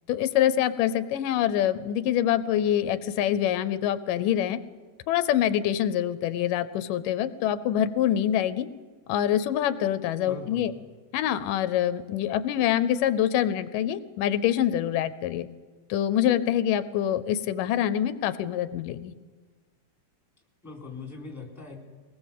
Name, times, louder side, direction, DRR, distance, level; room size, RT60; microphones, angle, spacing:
voice 1, 0.1-4.6 5.1-8.7 9.1-10.7 11.1-15.5 15.9-19.1, left 11 dB, 85° left, 14 dB, 2.4 m, -25 dB
voice 2, 10.2-10.7 20.6-21.8, left 4 dB, 5° left, 2 dB, 3.6 m, -41 dB
23.0 x 19.0 x 7.4 m, 1.4 s
omnidirectional pair, 3.7 m